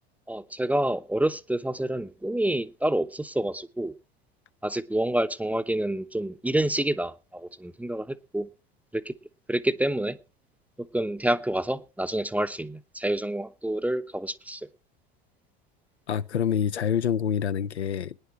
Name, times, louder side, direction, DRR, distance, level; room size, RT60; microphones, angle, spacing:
voice 1, 0.3-3.9 4.6-8.5 8.9-9.1 9.5-10.2 10.9-14.6, right 1 dB, 5° right, 0.7 m, -28 dB
voice 2, 16.1-18.2, left 8 dB, 85° left, 0.6 m, -26 dB
19.0 x 10.0 x 4.7 m
figure-of-eight pair, 70°, 32 cm